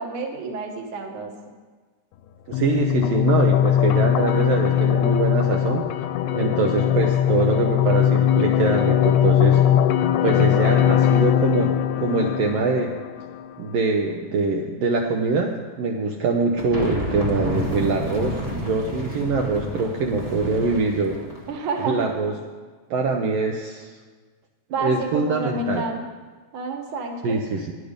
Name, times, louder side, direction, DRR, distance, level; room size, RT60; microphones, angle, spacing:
voice 1, 0.0-1.3 10.4-10.9 21.5-22.1 24.7-26.1 26.5-27.4, right 3 dB, 55° right, 3 dB, 1.6 m, -29 dB
sound 1, 2.5-13.5, left 10 dB, 85° left, 2.1 m, -20 dB
voice 2, 2.5-5.8 6.3-9.6 10.2-12.9 13.6-21.2 21.8-22.3 22.9-23.9 24.8-25.8 27.2-27.7, right 3 dB, 75° right, 1 dB, 1.4 m, -24 dB
sound 2, 16.6-21.6, equal, 40° right, 0.5 m, -30 dB
10.5 x 10.0 x 5.1 m, 1.4 s
omnidirectional pair, 3.6 m